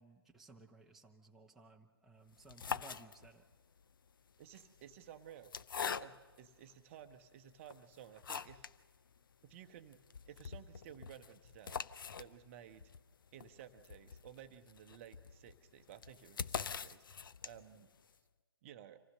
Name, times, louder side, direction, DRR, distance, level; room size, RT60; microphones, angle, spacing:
voice 1, 0.0-3.4, right 2 dB, ahead, -1 dB, 0.9 m, -59 dB
sound 1, 2.3-3.5 4.4-6.5 7.1-7.2 7.7-8.8 9.1-9.2 9.5-9.6 9.9-17.8, left 6 dB, 60° left, 0.7 m, -44 dB
voice 2, 4.4-5.5 5.8-8.7 9.4-10.0 10.3-11.8 12.2-12.9 13.3-17.0 17.4-17.9 18.6-19.0, right 10 dB, 30° right, 8 dB, 0.9 m, -55 dB
26.0 x 15.5 x 6.5 m, 1.4 s
figure-of-eight pair, 135°, 13 cm